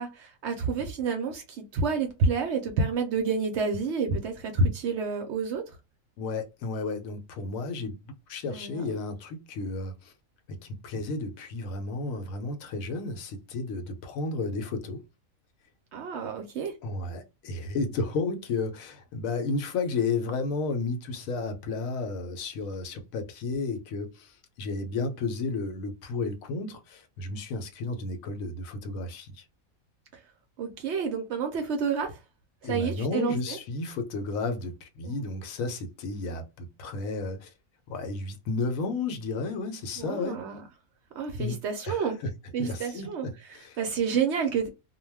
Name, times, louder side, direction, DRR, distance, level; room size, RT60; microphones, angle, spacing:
voice 1, 0.0-5.6 8.5-8.8 15.9-16.7 30.6-32.2 32.6-33.6 35.0-35.1 40.0-40.6 41.2-42.2 42.5-44.7, right 4 dB, 65° right, 0.7 m, -29 dB
voice 2, 6.2-10.1 10.5-15.0 16.8-29.4 32.6-37.5 37.9-40.4 41.4-41.6 41.8-42.3 42.6-43.8, left 3 dB, 75° left, 1.0 m, -32 dB
2.2 x 2.2 x 3.2 m
omnidirectional pair, 1.5 m